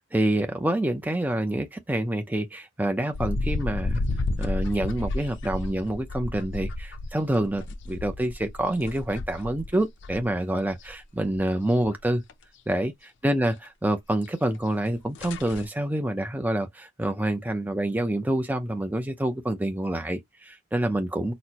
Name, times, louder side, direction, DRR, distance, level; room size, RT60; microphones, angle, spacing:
voice 1, 0.1-4.0 4.4-12.2 12.7-12.9 13.2-21.3, right 1 dB, 10° right, 0.5 m, -27 dB
sound 1, 3.1-10.3 10.6-11.5 11.8-11.9 12.3-12.4 14.5-14.6 14.9-15.0 15.1-15.7, left 2 dB, 55° left, 0.5 m, -31 dB
4.2 x 2.1 x 2.9 m
head